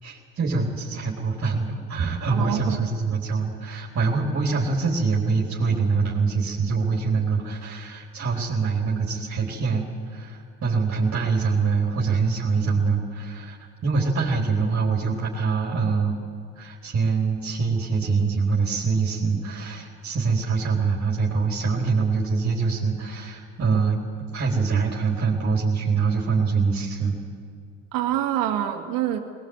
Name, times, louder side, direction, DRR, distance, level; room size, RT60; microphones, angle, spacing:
voice 1, 0.0-16.2 16.5-24.0 24.3-27.2, right 4 dB, 40° right, -2 dB, 4.0 m, -24 dB
voice 2, 2.3-2.8 27.9-29.2, right 12 dB, 70° right, 5 dB, 2.3 m, -25 dB
20.5 x 20.0 x 8.1 m, 2.2 s
hypercardioid pair, 65°, 35 cm